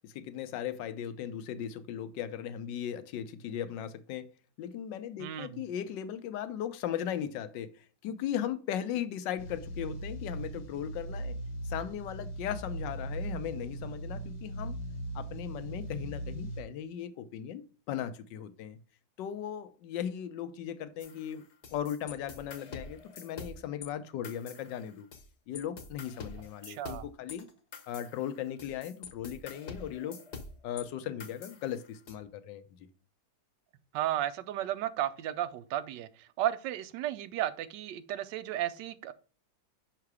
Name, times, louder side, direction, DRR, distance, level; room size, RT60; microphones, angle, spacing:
voice 1, 0.0-4.3 4.6-11.4 11.6-14.8 15.1-18.8 19.2-21.4 21.7-25.1 25.5-27.5 27.9-30.2 30.6-32.6, left 10 dB, 85° left, 1.3 m, -37 dB
voice 2, 5.2-5.6 26.7-27.0 33.9-39.1, right 12 dB, 85° right, 1.2 m, -34 dB
sound 1, 9.4-16.6, right 1 dB, 70° left, 1.4 m, -39 dB
sound 2, 21.0-23.9 24.2-25.3 25.5-30.8 31.2-32.1, left 4 dB, 50° left, 1.0 m, -46 dB
5.7 x 3.8 x 4.7 m
omnidirectional pair, 1.9 m